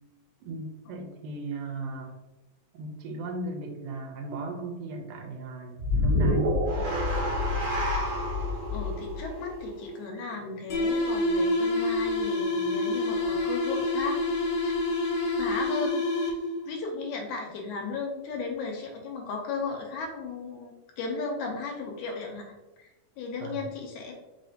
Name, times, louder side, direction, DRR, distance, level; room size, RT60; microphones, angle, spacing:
voice 1, 0.4-2.2 2.7-6.7 23.4-23.6, right 3 dB, 80° right, 2 dB, 2.2 m, -37 dB
sound 1, 5.8-10.1, left 1 dB, 60° right, 1.4 m, -27 dB
voice 2, 8.7-14.2 14.6-14.7 15.4-16.1 16.7-24.1, left 4 dB, 80° left, 1 dB, 2.0 m, -35 dB
sound 2, 10.7-16.6, left 2 dB, 65° left, 1.7 m, -27 dB
4.9 x 3.2 x 2.7 m, 1.1 s
omnidirectional pair, 3.6 m